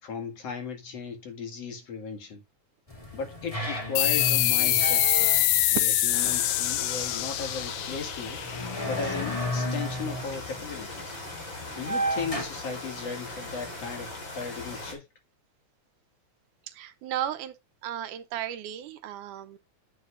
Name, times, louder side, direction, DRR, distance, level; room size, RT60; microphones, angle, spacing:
voice 1, 0.0-2.4 3.1-5.3 5.7-8.4 8.9-11.1 11.7-14.1 14.4-15.1, left 5 dB, 55° left, 2.9 m, -36 dB
sound 1, 2.9-12.4, equal, 15° left, 1.8 m, -34 dB
sound 2, 4.0-9.1, left 14 dB, 75° left, 2.0 m, -25 dB
sound 3, 6.1-14.9, left 2 dB, 40° left, 3.7 m, -40 dB
voice 2, 16.7-17.6 17.8-19.6, right 11 dB, 85° right, 2.4 m, -35 dB
9.9 x 8.2 x 2.4 m
omnidirectional pair, 3.5 m